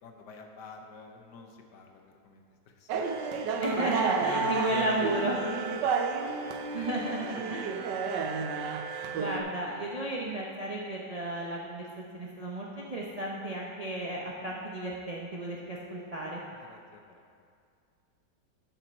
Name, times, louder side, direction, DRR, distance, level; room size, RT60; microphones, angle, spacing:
voice 1, 0.0-3.1 4.2-5.9 7.6-8.7 16.6-17.2, left 4 dB, 75° left, 3 dB, 1.4 m, -46 dB
sound 1, 2.9-9.4, right 5 dB, 90° right, 1.3 m, -31 dB
voice 2, 3.6-5.3 6.7-7.6 9.1-16.4, right 2 dB, 50° right, -4 dB, 0.4 m, -33 dB
11.0 x 5.8 x 4.2 m, 2.3 s
omnidirectional pair, 1.8 m